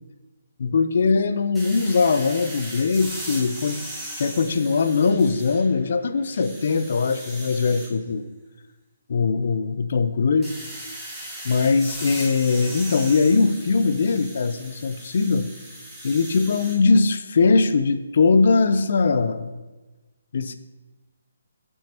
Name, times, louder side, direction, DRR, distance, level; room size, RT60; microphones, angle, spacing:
voice 1, 0.6-3.8 4.2-8.3 9.1-10.5 11.4-15.5 16.0-19.5 20.3-20.5, left 4 dB, 55° left, 11 dB, 0.7 m, -21 dB
sound 1, 1.5-5.8 6.2-7.9 10.4-16.8, right 1 dB, 5° right, 2.0 m, -38 dB
16.0 x 6.4 x 3.0 m, 1.2 s
figure-of-eight pair, 140°, 0 cm